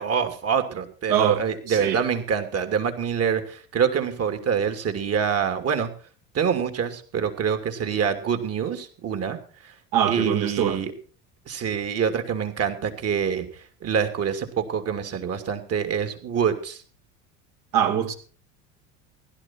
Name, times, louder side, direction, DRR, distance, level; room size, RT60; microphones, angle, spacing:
voice 1, 0.0-5.9 6.3-9.4 9.6-9.7 10.1-10.9 11.5-16.8, right 7 dB, 40° right, 2.8 m, -26 dB
voice 2, 1.1-2.0 9.9-10.8 17.7-18.1, right 9 dB, 55° right, 2.7 m, -23 dB
16.5 x 11.5 x 4.5 m
hypercardioid pair, 85°, 39 cm